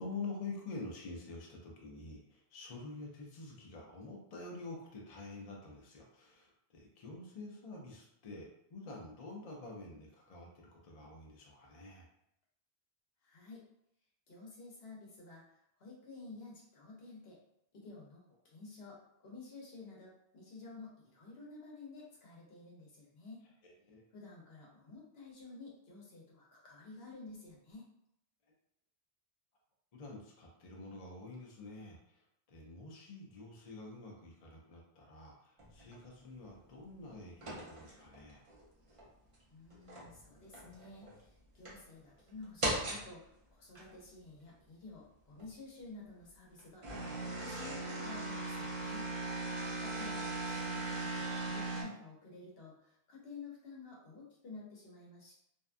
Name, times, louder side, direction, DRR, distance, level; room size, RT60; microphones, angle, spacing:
voice 1, 0.0-12.1 23.6-24.0 29.9-38.4, left 3 dB, 45° left, -1 dB, 0.5 m, -47 dB
voice 2, 13.2-13.7 14.3-15.5 15.8-17.4 17.7-23.5 24.1-27.9 39.5-49.1 49.8-55.3, left 3 dB, 70° left, -3 dB, 1.0 m, -52 dB
sound 1, 35.6-36.0 37.4-38.6 39.0-39.1 39.7-40.2 40.5-41.1 41.6-41.7 42.6-43.0 43.7-43.9 45.4-45.5 46.6-51.8, right 2 dB, 40° right, 0.6 m, -38 dB
2.6 x 2.2 x 2.4 m, 0.76 s
omnidirectional pair, 1.1 m